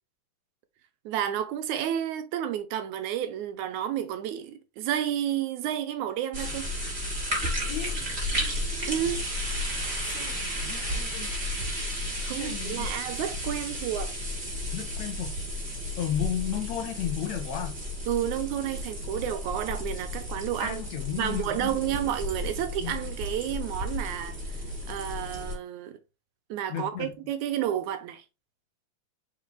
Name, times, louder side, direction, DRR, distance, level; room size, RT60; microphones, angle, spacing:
voice 1, 1.1-6.7 8.9-9.2 12.2-14.1 18.1-20.8 21.2-24.6 24.9-26.0 26.5-28.2, right 10 dB, 90° right, 2.2 m, -31 dB
sound 1, 6.3-25.5, equal, 15° right, 2.4 m, -33 dB
voice 2, 7.7-8.0 10.1-11.3 12.4-12.9 14.7-15.4 16.0-17.8 20.6-21.8 22.8-23.0 26.7-27.2, left 10 dB, 70° left, 2.4 m, -34 dB
5.5 x 5.1 x 3.3 m
omnidirectional pair, 3.4 m